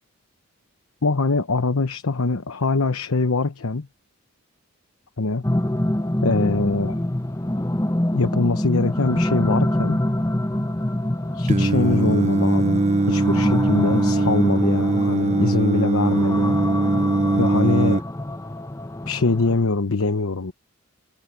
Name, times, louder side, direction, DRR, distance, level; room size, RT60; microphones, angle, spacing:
voice 1, 1.0-3.9 5.2-5.4 6.2-7.0 8.1-10.0 11.3-16.6 17.4-18.0 19.1-20.5, left 3 dB, 80° left, 1.0 m, -23 dB
sound 1, 5.4-19.6, left 1 dB, 15° left, 0.8 m, -26 dB
Singing, 11.5-18.0, right 2 dB, 30° right, 0.8 m, -21 dB
head